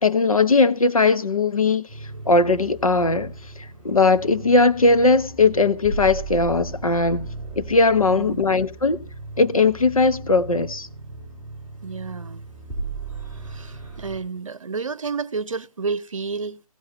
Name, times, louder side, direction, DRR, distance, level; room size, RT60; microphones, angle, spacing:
voice 1, 0.0-1.8 2.3-3.3 3.8-7.3 7.6-9.0 9.4-10.9, left 3 dB, 70° left, 1.3 m, -19 dB
sound 1, 1.9-14.2, right 3 dB, 10° left, 3.7 m, -36 dB
voice 2, 8.1-8.6 11.8-12.4 13.4-16.6, right 4 dB, 60° right, 0.8 m, -30 dB
15.5 x 14.0 x 2.9 m
figure-of-eight pair, 155°, 19 cm